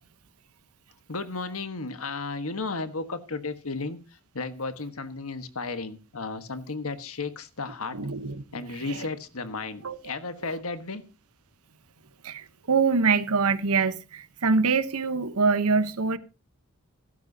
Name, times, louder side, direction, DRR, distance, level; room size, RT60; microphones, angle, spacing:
voice 1, 1.1-8.0 8.5-11.0, left 3 dB, 75° left, 1.5 m, -34 dB
voice 2, 7.9-8.4 9.8-10.0 12.2-16.2, right 4 dB, 85° right, 1.0 m, -24 dB
16.0 x 13.0 x 2.8 m
head